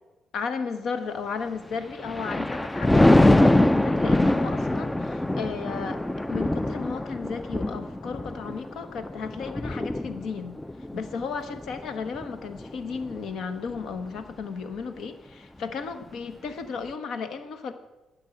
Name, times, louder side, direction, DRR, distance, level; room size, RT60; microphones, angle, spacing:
voice 1, 0.3-6.0 6.3-10.5 10.9-17.7, left 5 dB, 70° left, 10 dB, 1.1 m, -34 dB
Thunder, 1.7-13.2 13.7-14.0, left 1 dB, 10° left, 0.3 m, -24 dB
10.5 x 6.3 x 9.0 m, 1.1 s
cardioid pair, 90°, 0 cm